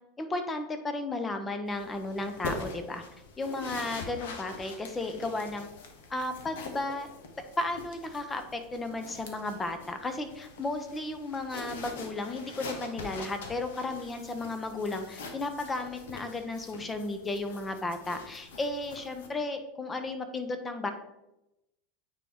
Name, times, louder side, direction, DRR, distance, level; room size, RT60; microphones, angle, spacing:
voice 1, 0.2-3.0 3.4-5.7 6.1-7.1 7.6-20.9, left 2 dB, 20° left, 7 dB, 0.7 m, -34 dB
sound 1, 1.7-19.3, left 3 dB, 70° left, 0.9 m, -44 dB
8.9 x 3.0 x 3.6 m, 0.91 s
hypercardioid pair, 85°, 0 cm